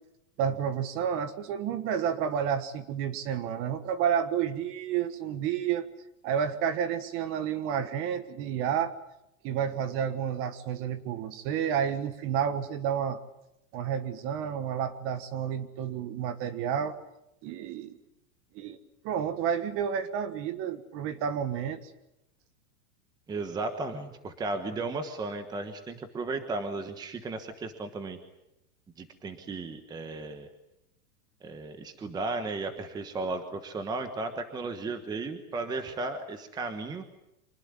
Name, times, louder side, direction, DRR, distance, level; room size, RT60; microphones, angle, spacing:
voice 1, 0.4-5.9 6.2-8.9 9.4-13.2 13.7-17.0 17.4-18.0 18.5-18.8 19.0-21.9, right 8 dB, 30° right, 12 dB, 1.5 m, -30 dB
voice 2, 23.3-28.2 29.0-30.5 31.4-37.0, right 3 dB, 10° right, 9 dB, 1.2 m, -35 dB
25.5 x 19.5 x 9.7 m, 0.86 s
supercardioid pair, 165°, 44 cm